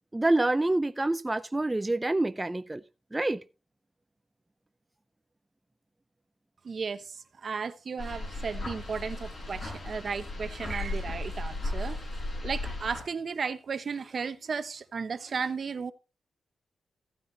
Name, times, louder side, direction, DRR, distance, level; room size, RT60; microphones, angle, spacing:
voice 1, 0.1-2.8 3.1-3.4, right 2 dB, 20° right, 0.5 m, -27 dB
voice 2, 6.6-12.0 12.4-15.9, right 5 dB, 55° right, 1.0 m, -34 dB
sound 1, 8.0-13.0, left 2 dB, 45° left, 6.6 m, -35 dB
15.5 x 9.3 x 2.8 m
cardioid pair, 75°, 0 cm